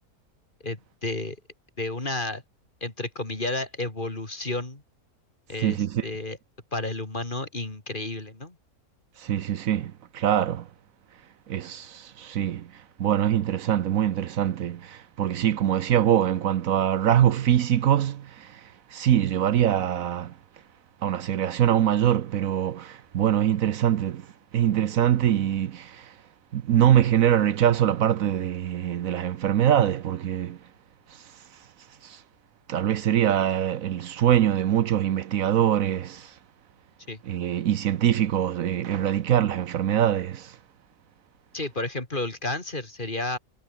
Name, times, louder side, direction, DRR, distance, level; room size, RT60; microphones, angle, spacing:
voice 1, 0.6-1.4 1.8-2.4 2.8-4.8 5.5-6.4 6.7-8.6 37.1-37.2 41.5-43.4, left 2 dB, 35° left, 3.4 m, -31 dB
voice 2, 5.6-6.1 9.2-10.7 11.5-12.7 13.0-20.3 21.0-24.3 24.5-26.1 26.5-30.6 32.0-32.2 32.7-36.3 37.2-40.6, right 10 dB, 70° right, 1.2 m, -23 dB
omnidirectional pair, 1.5 m